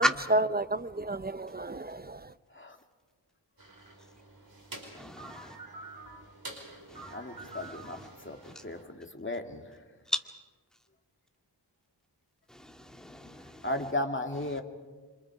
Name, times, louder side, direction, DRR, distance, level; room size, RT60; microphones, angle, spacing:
voice 1, 0.3-2.3, right 2 dB, 20° right, 0.6 m, -30 dB
sound 1, 3.6-8.8, right 2 dB, 55° right, 5.1 m, -47 dB
voice 2, 4.9-5.6 6.9-8.1 8.4-8.6 10.1-10.2 12.5-13.7 14.5-14.6, equal, ahead, 2.2 m, -35 dB
voice 3, 7.1-9.8 13.4-14.6, left 1 dB, 25° left, 2.5 m, -36 dB
27.5 x 26.5 x 4.9 m
wide cardioid pair, 50°, 43 cm